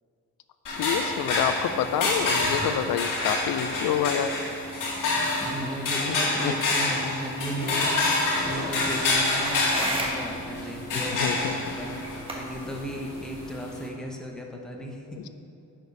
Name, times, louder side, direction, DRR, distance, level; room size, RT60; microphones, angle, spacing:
voice 1, 0.7-4.4 6.1-6.5 11.2-11.6, left 9 dB, 80° left, 11 dB, 0.5 m, -28 dB
sound 1, 0.7-13.9, left 2 dB, 65° left, 2.1 m, -28 dB
voice 2, 5.1-15.3, equal, ahead, 0 dB, 0.9 m, -36 dB
sound 2, 8.4-13.5, right 1 dB, 15° right, 1.3 m, -37 dB
10.5 x 5.1 x 5.4 m, 2.8 s
cardioid pair, 145°, 35 cm